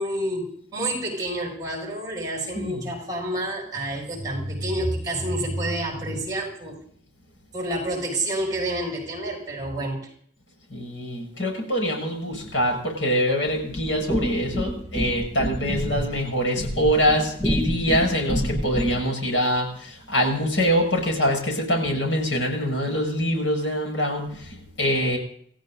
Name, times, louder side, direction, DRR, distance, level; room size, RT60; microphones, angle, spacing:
voice 1, 0.0-6.8 7.5-10.1, right 1 dB, 20° right, -2 dB, 7.2 m, -28 dB
voice 2, 2.5-2.9 10.7-25.2, equal, 75° left, 1 dB, 7.5 m, -24 dB
sound 1, 13.7-19.1, equal, 20° left, 1.2 m, -28 dB
29.5 x 15.5 x 2.7 m, 0.63 s
head